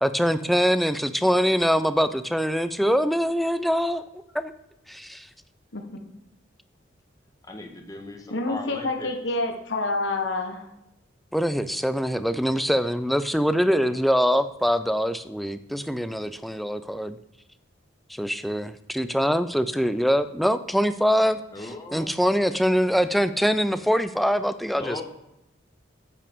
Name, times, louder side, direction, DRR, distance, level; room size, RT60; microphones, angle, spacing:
voice 1, 0.0-4.0 4.3-4.5 4.9-5.3 11.3-17.2 18.1-25.0, equal, ahead, 11 dB, 0.4 m, -23 dB
voice 2, 7.5-9.1 21.5-22.1 24.7-25.0, left 2 dB, 20° left, 2 dB, 1.2 m, -37 dB
voice 3, 8.3-10.7, left 2 dB, 65° left, 4 dB, 1.2 m, -28 dB
9.9 x 8.4 x 3.6 m, 0.87 s
head